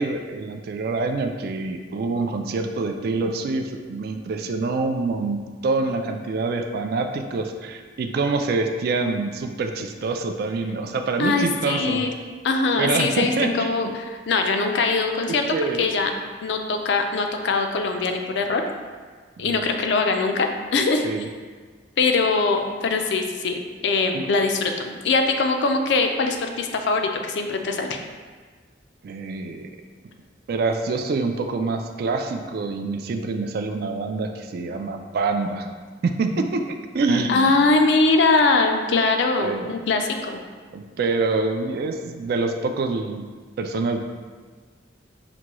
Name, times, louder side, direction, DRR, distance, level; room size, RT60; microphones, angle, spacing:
voice 1, 0.0-12.1 12.8-13.9 15.3-15.9 19.4-19.7 21.0-21.3 24.1-24.3 29.0-29.7 30.5-35.7 36.0-36.6 36.9-37.5 39.4-39.7 40.7-43.3 43.6-44.0, right 3 dB, 55° right, 5 dB, 0.3 m, -26 dB
voice 2, 11.2-12.1 12.4-16.1 16.4-18.6 19.4-21.1 22.0-28.0 37.3-40.4, left 3 dB, 65° left, 4 dB, 0.4 m, -22 dB
5.9 x 2.2 x 2.9 m, 1.5 s
head